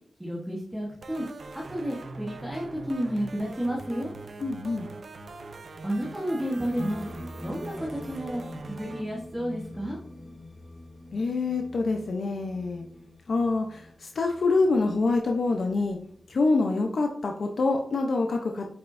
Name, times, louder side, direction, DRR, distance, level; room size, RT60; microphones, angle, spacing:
voice 1, 0.2-1.3 1.7-4.1 5.8-7.1 7.4-8.4 8.7-10.0, equal, 5° right, -3 dB, 1.2 m, -31 dB
sound 1, 1.0-9.0, right 3 dB, 65° right, 0.6 m, -42 dB
voice 2, 4.4-4.9 11.1-12.9 13.3-16.0 16.3-18.7, left 3 dB, 75° left, 2 dB, 0.7 m, -26 dB
sound 2, 6.7-16.3, left 1 dB, 15° left, 2.6 m, -44 dB
8.8 x 5.5 x 2.6 m, 0.66 s
wide cardioid pair, 135°, 0 cm